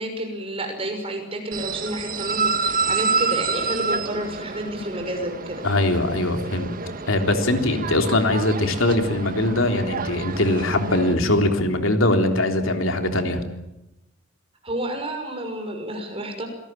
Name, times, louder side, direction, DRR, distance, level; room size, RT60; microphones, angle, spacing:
voice 1, 0.0-5.7 14.6-16.5, right 1 dB, 30° right, 4 dB, 6.2 m, -30 dB
sound 1, 1.5-11.1, right 4 dB, 45° right, 1.6 m, -28 dB
voice 2, 5.6-6.7 7.1-13.4, left 1 dB, 75° left, 5 dB, 3.5 m, -21 dB
26.5 x 19.0 x 9.0 m, 0.91 s
head